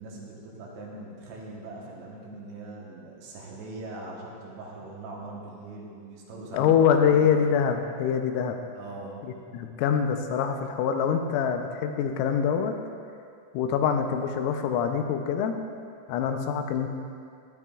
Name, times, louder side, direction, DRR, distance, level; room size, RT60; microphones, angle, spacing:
voice 1, 0.0-7.3 8.7-9.3, right 2 dB, 70° right, -3 dB, 3.1 m, -41 dB
voice 2, 6.5-8.6 9.2-12.7 13.5-15.6 16.1-16.9, left 7 dB, 85° left, 5 dB, 3.4 m, -24 dB
15.5 x 12.0 x 2.4 m, 2.4 s
omnidirectional pair, 5.8 m